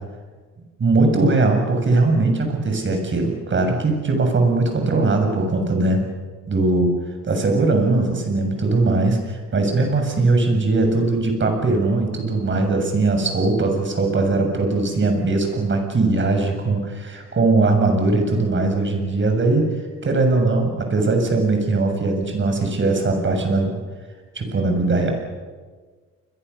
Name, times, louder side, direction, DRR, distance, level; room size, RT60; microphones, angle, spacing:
voice 1, 0.8-6.0 6.5-7.0 7.2-19.7 20.0-23.8 24.4-25.1, right 3 dB, 40° right, 4 dB, 7.1 m, -20 dB
29.5 x 22.0 x 7.0 m, 1.4 s
cardioid pair, 90°, 30 cm